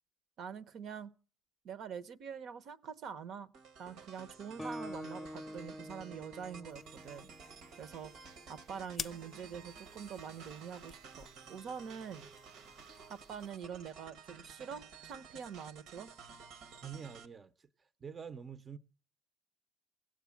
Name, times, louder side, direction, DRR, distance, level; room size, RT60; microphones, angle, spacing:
voice 1, 0.4-1.1 1.6-3.5 3.8-7.3 7.8-8.1 8.5-12.3 13.1-16.1, right 7 dB, 65° right, 0.8 m, -45 dB
sound 1, 3.5-17.3, right 5 dB, 85° right, 1.1 m, -53 dB
Guitar, 4.6-8.3, equal, 10° left, 0.7 m, -47 dB
sound 2, 6.7-13.5, left 7 dB, 45° left, 0.5 m, -51 dB
voice 2, 16.8-18.8, right 7 dB, 35° right, 0.6 m, -47 dB
17.0 x 7.4 x 7.1 m
cardioid pair, 105°, 0 cm